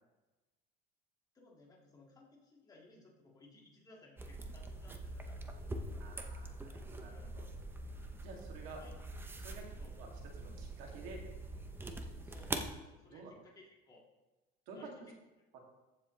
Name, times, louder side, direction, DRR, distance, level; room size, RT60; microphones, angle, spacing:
voice 1, 1.3-5.7 7.0-7.4 8.6-9.0 9.8-9.9 12.2-14.0 14.7-14.9, left 2 dB, 20° left, -3 dB, 2.2 m, -61 dB
sound 1, 4.2-12.7, right 2 dB, 10° right, 0.7 m, -44 dB
voice 2, 6.0-7.4 8.2-8.8 9.4-9.7 9.9-10.1 10.4-11.2 13.1-13.3 14.7-15.1 15.5-15.6, right 3 dB, 70° right, 0 dB, 2.5 m, -51 dB
14.5 x 7.6 x 3.3 m, 1.1 s
cardioid pair, 150°, 21 cm